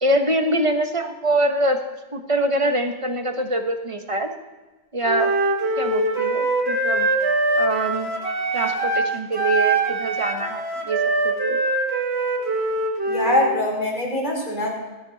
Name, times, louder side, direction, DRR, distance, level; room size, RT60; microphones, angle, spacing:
voice 1, 0.0-1.8 2.1-4.3 4.9-5.3 5.8-7.1 7.5-8.1 8.5-11.6, right 1 dB, 30° right, 5 dB, 1.3 m, -24 dB
Wind instrument woodwind instrument, 5.0-9.1 9.3-13.5, right 2 dB, 70° right, 1.9 m, -23 dB
voice 2, 13.0-14.7, left 1 dB, 45° left, -2 dB, 4.3 m, -23 dB
19.0 x 13.0 x 4.1 m, 1.2 s
omnidirectional pair, 1.1 m